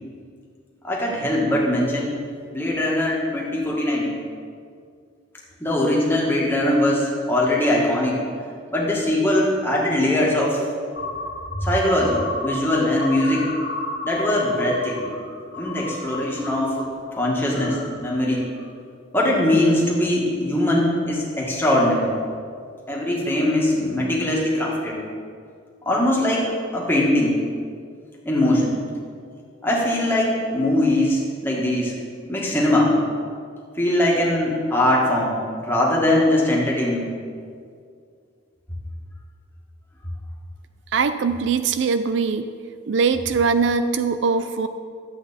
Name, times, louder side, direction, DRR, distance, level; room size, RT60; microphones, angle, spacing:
voice 1, 0.8-2.2 2.5-4.1 5.6-8.2 8.7-10.6 11.6-13.5 14.0-15.1 15.6-18.5 19.1-22.1 22.9-25.0 25.8-27.4 28.2-28.8 29.6-31.9 32.2-33.0 33.8-37.1, left 1 dB, 10° left, -4 dB, 1.7 m, -21 dB
sound 1, 10.9-16.7 17.0-17.9 18.4-18.7, left 2 dB, 80° left, 1.9 m, -32 dB
voice 2, 40.9-42.5 42.9-44.7, right 5 dB, 65° right, 11 dB, 0.4 m, -21 dB
12.0 x 8.0 x 4.2 m, 2.2 s
head